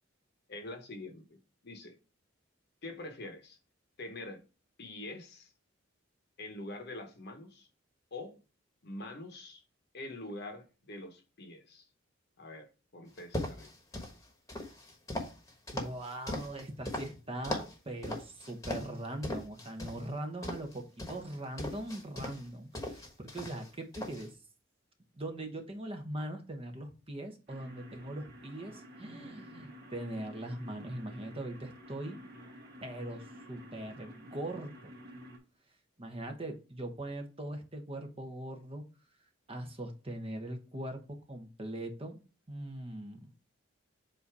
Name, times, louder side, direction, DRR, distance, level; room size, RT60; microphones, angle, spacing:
voice 1, 0.5-2.0 2.8-3.6 4.0-4.4 4.8-5.5 6.4-7.7 8.1-8.4 8.8-9.6 9.9-11.9 12.4-13.7, left 2 dB, 55° left, 1.1 m, -45 dB
footsteps socks wood, 13.2-14.1 14.5-17.1 17.4-17.7 18.0-19.0 19.2-20.0 20.4-22.4 22.7-23.7 23.9-24.3, left 1 dB, 15° left, 1.2 m, -38 dB
voice 2, 15.7-24.3 25.1-32.2 32.8-34.8 36.0-38.8 39.5-42.2 42.5-43.3, right 1 dB, 30° right, 1.0 m, -41 dB
sound 1, 27.5-35.4, equal, 50° right, 1.7 m, -51 dB
7.7 x 2.8 x 4.7 m
head